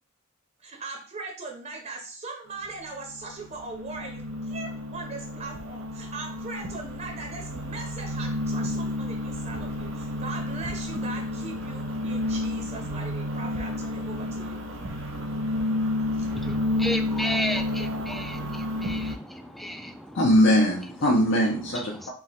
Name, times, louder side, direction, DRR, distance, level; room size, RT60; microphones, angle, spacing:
voice 1, 0.6-14.6 16.2-16.3, right 3 dB, 35° right, 1 dB, 0.7 m, -39 dB
sound 1, 2.6-19.1, left 1 dB, 80° right, 1.2 m, -31 dB
voice 2, 16.3-20.2 22.0-22.1, equal, ahead, 7 dB, 0.3 m, -33 dB
voice 3, 20.1-22.1, equal, 65° left, -3 dB, 0.8 m, -21 dB
3.6 x 2.9 x 4.3 m, 0.41 s
head